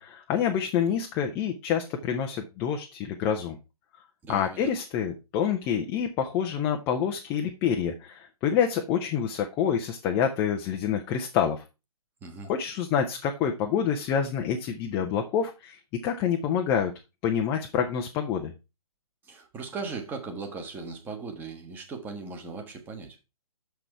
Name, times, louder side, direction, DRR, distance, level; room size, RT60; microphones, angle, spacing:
voice 1, 0.0-3.6 4.3-11.6 12.4-16.9 17.2-18.5, left 8 dB, 10° left, 0.4 m, -27 dB
voice 2, 4.2-4.7 12.2-12.5 19.3-23.2, right 4 dB, 10° right, 1.1 m, -38 dB
6.8 x 6.0 x 4.5 m
figure-of-eight pair, 140°, 19 cm